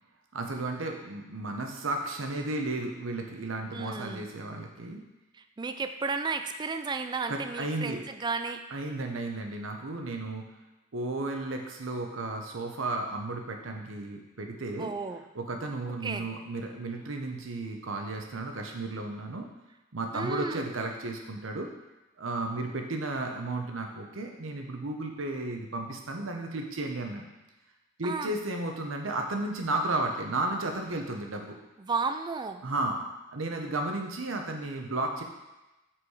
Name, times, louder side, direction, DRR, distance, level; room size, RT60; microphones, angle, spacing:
voice 1, 0.3-5.0 7.3-8.0 8.7-10.4 10.9-14.9 15.3-19.5 19.9-21.7 22.2-27.3 28.0-31.6 32.6-33.0 33.3-35.2, right 2 dB, 90° right, 3 dB, 0.9 m, -33 dB
voice 2, 3.7-4.2 5.3-8.6 14.8-15.2 16.0-16.3 20.1-20.6 28.0-28.3 31.8-32.6, right 4 dB, 20° right, 8 dB, 0.3 m, -33 dB
5.9 x 4.6 x 4.8 m, 1.0 s
head